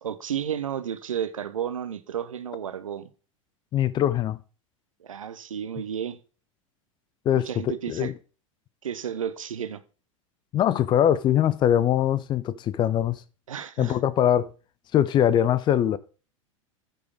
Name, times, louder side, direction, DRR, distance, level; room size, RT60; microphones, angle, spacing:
voice 1, 0.0-3.1 5.0-6.2 7.3-8.1 8.8-9.8 13.5-14.0, right 9 dB, 70° right, 0.7 m, -32 dB
voice 2, 3.7-4.4 7.3-8.1 10.5-13.2 13.8-14.5 14.9-16.0, left 10 dB, 25° left, 0.5 m, -22 dB
9.0 x 4.9 x 4.9 m
figure-of-eight pair, 85°, 17 cm